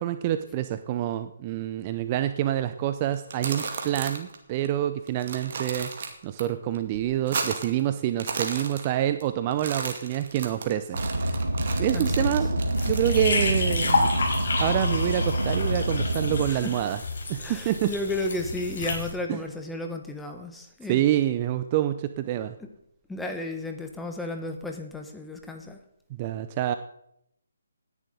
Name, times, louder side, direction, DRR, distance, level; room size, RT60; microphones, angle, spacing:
voice 1, 0.0-11.4 11.8-14.1 14.6-17.0 17.3-17.9 19.3-19.4 20.9-22.6 26.2-26.7, right 12 dB, 30° right, 11 dB, 0.6 m, -27 dB
sound 1, 3.1-4.4 4.7-4.8 5.1-6.4 6.8-7.8 8.1-9.2 9.5-13.3, right 5 dB, 45° right, 2.2 m, -34 dB
Car, 10.9-16.4, right 1 dB, 80° right, 1.4 m, -27 dB
voice 2, 11.9-12.4 16.5-16.8 17.4-21.0 22.6-22.7 23.1-25.8, left 2 dB, 5° left, 4 dB, 1.3 m, -33 dB
sound 2, 12.8-19.1, left 3 dB, 55° left, 4.8 m, -30 dB
18.0 x 10.5 x 3.9 m, 0.75 s
figure-of-eight pair, 145°, 0 cm